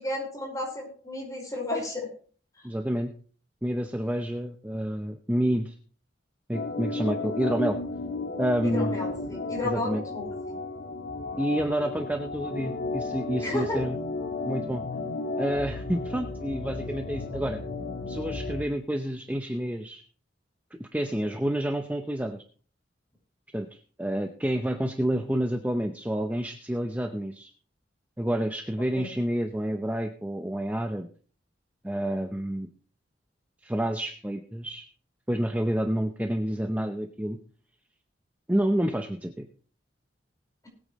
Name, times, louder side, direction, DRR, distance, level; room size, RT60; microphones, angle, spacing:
voice 1, 0.0-2.1 2.6-2.7 8.6-10.6 13.4-13.8 28.9-29.1, left 2 dB, 20° left, -1 dB, 5.1 m, -32 dB
voice 2, 2.6-3.1 3.6-5.7 6.5-7.8 8.4-9.0 9.6-10.0 11.4-14.0 14.4-14.8 15.4-17.6 18.1-20.0 20.8-22.4 23.5-27.5 28.2-31.1 31.8-32.7 33.6-34.9 35.3-37.4 38.5-39.5, right 1 dB, 10° right, 5 dB, 0.7 m, -29 dB
Organ, 6.5-18.7, left 3 dB, 90° left, 1.6 m, -33 dB
20.0 x 8.7 x 3.2 m, 0.44 s
head